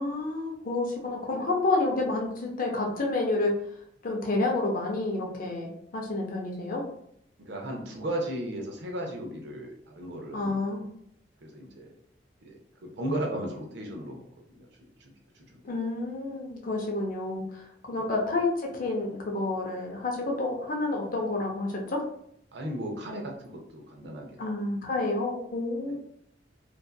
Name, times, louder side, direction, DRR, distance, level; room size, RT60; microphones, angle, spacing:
voice 1, 0.0-3.6 4.0-6.9 10.3-10.9 15.6-22.0 24.4-26.0, left 2 dB, 50° left, 1 dB, 0.5 m, -29 dB
voice 2, 7.4-10.6 11.4-12.0 12.4-14.2 14.5-14.7 15.0-15.6 17.9-18.1 22.5-24.4 25.9-26.0, right 1 dB, 70° right, 1 dB, 0.6 m, -36 dB
2.6 x 2.3 x 2.2 m, 0.72 s
head